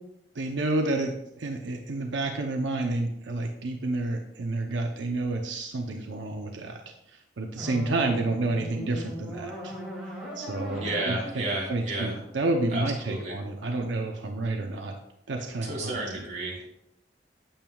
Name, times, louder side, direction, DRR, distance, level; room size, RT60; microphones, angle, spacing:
voice 1, 0.3-6.8 7.4-9.8 10.4-11.2 11.7-14.9 15.3-16.0, right 2 dB, 85° right, 3 dB, 0.7 m, -29 dB
sound 1, 7.6-12.7, equal, 5° right, 2.5 m, -39 dB
voice 2, 10.7-12.2 12.7-13.4 15.4-16.7, right 2 dB, 40° right, -3 dB, 2.8 m, -32 dB
8.9 x 8.7 x 2.3 m, 0.79 s
head